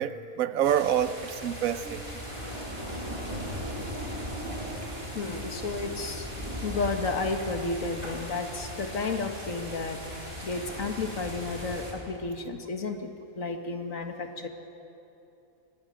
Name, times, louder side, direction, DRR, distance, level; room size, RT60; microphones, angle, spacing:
voice 1, 0.0-2.0, right 9 dB, 70° right, 1.1 m, -27 dB
sound 1, 0.6-11.9, equal, 20° right, 3.6 m, -38 dB
voice 2, 5.1-6.3 6.6-14.5, left 3 dB, 65° left, 1.9 m, -32 dB
25.0 x 19.0 x 6.4 m
omnidirectional pair, 1.5 m